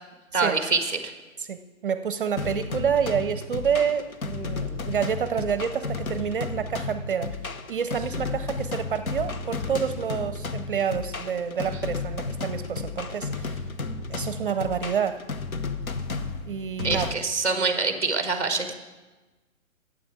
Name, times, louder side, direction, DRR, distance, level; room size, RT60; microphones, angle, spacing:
voice 1, 0.3-0.9 16.8-18.7, right 4 dB, 5° left, 7 dB, 0.7 m, -25 dB
voice 2, 1.4-7.4 7.7-13.6 14.1-15.3 16.5-17.1, right 7 dB, 40° right, 11 dB, 0.6 m, -28 dB
sound 1, 2.4-17.1, left 3 dB, 85° left, 1.0 m, -33 dB
9.2 x 7.8 x 8.0 m, 1.2 s
hypercardioid pair, 145°, 41 cm